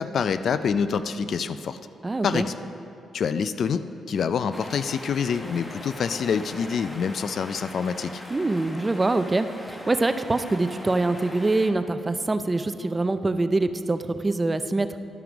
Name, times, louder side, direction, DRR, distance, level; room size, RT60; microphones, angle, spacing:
voice 1, 0.0-1.8 2.2-2.5 3.1-8.1, left 6 dB, 65° left, 12 dB, 0.3 m, -26 dB
voice 2, 2.0-2.5 8.3-15.0, right 2 dB, 25° right, 11 dB, 0.5 m, -24 dB
sound 1, 4.5-11.7, left 1 dB, 15° left, 1.2 m, -41 dB
11.5 x 5.8 x 5.0 m, 2.8 s
cardioid pair, 65°, 0 cm